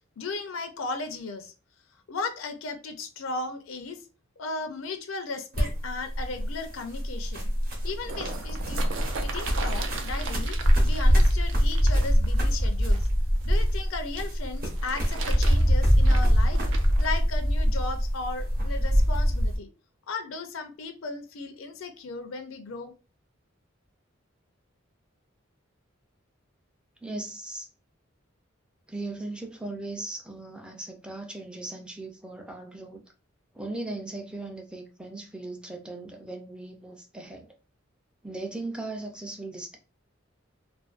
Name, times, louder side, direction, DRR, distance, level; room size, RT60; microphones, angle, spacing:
voice 1, 0.2-1.5 2.1-4.0 4.4-7.5 7.8-8.8 9.2-10.6 10.8-13.0 13.4-16.6 17.0-19.7 20.1-22.9, left 3 dB, 80° left, 0.4 m, -36 dB
sound 1, 5.5-19.6, equal, 50° right, 0.8 m, -23 dB
sound 2, 7.6-13.7 14.6-17.1 17.8-17.9, right 4 dB, 70° right, 0.4 m, -39 dB
voice 2, 27.0-27.7 28.9-33.0 33.5-37.5 38.2-39.8, right 2 dB, 5° right, 0.4 m, -38 dB
2.4 x 2.2 x 2.4 m
head